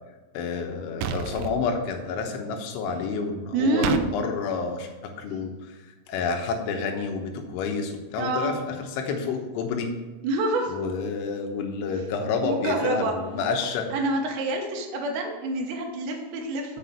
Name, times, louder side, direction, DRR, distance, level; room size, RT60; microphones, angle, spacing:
voice 1, 0.4-4.9 5.2-5.8 6.1-9.9 10.7-13.9, left 5 dB, 80° left, 3 dB, 3.4 m, -29 dB
sound 1, 1.0-1.6 3.8-4.1, right 7 dB, 90° right, 2.5 m, -29 dB
voice 2, 3.5-4.0 8.2-8.5 10.2-10.7 12.4-13.1 13.9-16.8, right 2 dB, 70° right, 1 dB, 3.3 m, -26 dB
7.4 x 6.0 x 6.9 m, 1.2 s
omnidirectional pair, 5.6 m